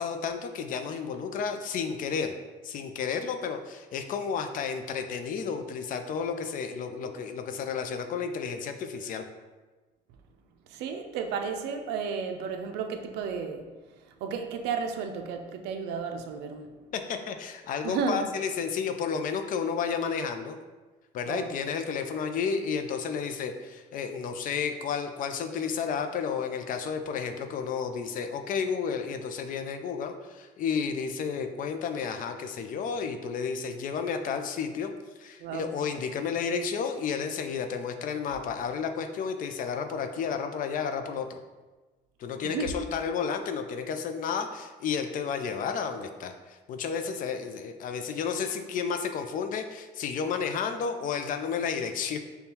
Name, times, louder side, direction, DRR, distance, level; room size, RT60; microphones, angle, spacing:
voice 1, 0.0-2.3 2.6-9.3 16.9-20.6 21.1-34.9 35.2-41.4 42.2-52.2, left 6 dB, 55° left, 7 dB, 0.4 m, -32 dB
voice 2, 10.7-13.6 14.2-16.7 17.8-18.3 21.3-21.5 35.4-35.7 42.4-42.7, right 5 dB, 85° right, 5 dB, 0.4 m, -33 dB
5.2 x 2.2 x 2.8 m, 1.2 s
cardioid pair, 110°, 17 cm